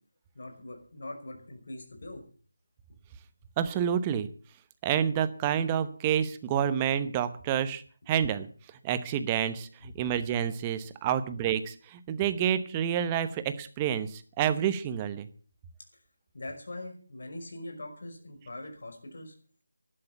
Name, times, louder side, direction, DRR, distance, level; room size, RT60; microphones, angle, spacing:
voice 1, 0.3-2.2 16.3-19.3, left 1 dB, 60° left, 4 dB, 5.6 m, -42 dB
voice 2, 3.6-4.3 4.8-8.5 8.8-15.3, right 9 dB, 15° right, 12 dB, 1.0 m, -28 dB
12.5 x 11.0 x 6.9 m, 0.42 s
figure-of-eight pair, 165°, 0 cm